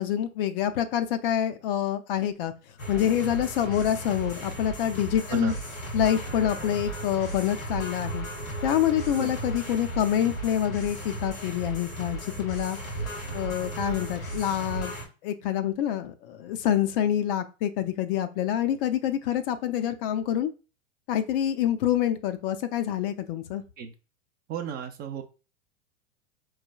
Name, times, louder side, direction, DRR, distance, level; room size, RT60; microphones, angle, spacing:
voice 1, 0.0-2.5 2.9-5.5 5.9-8.3 8.6-12.8 13.3-14.9 15.2-20.5 21.1-23.6, left 10 dB, 45° left, 9 dB, 0.5 m, -26 dB
sound 1, 2.8-15.1, right 2 dB, 90° left, 1.7 m, -35 dB
voice 2, 24.5-25.2, right 7 dB, 25° right, 6 dB, 0.5 m, -34 dB
4.4 x 3.2 x 2.2 m, 0.32 s
hypercardioid pair, 100°, 39 cm